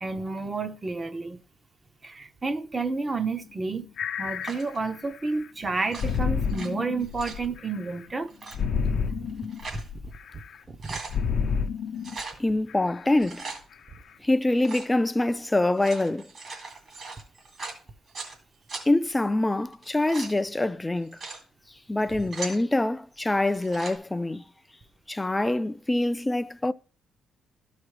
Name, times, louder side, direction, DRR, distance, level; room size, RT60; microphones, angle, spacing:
voice 1, 0.0-1.4 2.0-3.9 4.2-8.3 8.7-9.3 9.7-9.8 10.7-11.0, right 3 dB, 25° right, 0.8 m, -31 dB
sound 1, 3.4-3.7 4.0-5.5 6.0-8.1 8.5-10.6 11.1-12.2 12.7-13.1 13.7-13.8, left 6 dB, 65° left, 0.6 m, -30 dB
sound 2, 4.4-4.8 5.8-6.7 7.0-7.5 8.3-8.6 9.3-9.9 10.3-10.4 10.6-11.2 12.0-12.4 13.1-13.6 14.6-14.9 15.6-18.4 18.7-18.8 19.7-20.3 21.0-21.4 22.0-22.6 23.5-24.0, right 3 dB, 50° right, 2.3 m, -39 dB
voice 2, 12.4-13.4 14.2-16.3 18.9-21.2 21.9-24.4 25.1-26.7, left 2 dB, 15° left, 0.4 m, -25 dB
12.5 x 4.9 x 3.2 m
cardioid pair, 90°, 0 cm